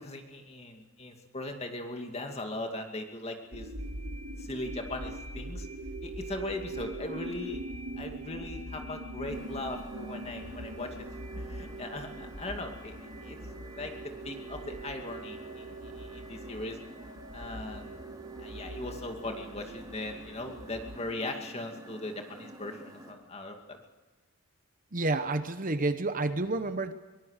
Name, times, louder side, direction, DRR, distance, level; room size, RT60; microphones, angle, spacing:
voice 1, 0.0-3.7 4.4-5.7 6.0-7.6 8.0-11.1 11.4-13.4 13.8-13.9 14.2-15.7 15.9-16.8 17.3-18.0 18.4-23.8, left 2 dB, 30° left, 4 dB, 2.4 m, -39 dB
sound 1, 3.5-21.0, right 2 dB, 70° right, 2.5 m, -42 dB
sound 2, 9.3-23.1, right 1 dB, 20° right, 3.4 m, -49 dB
voice 2, 24.9-26.9, right 2 dB, 40° right, 10 dB, 0.9 m, -29 dB
23.5 x 19.0 x 6.6 m, 1.2 s
head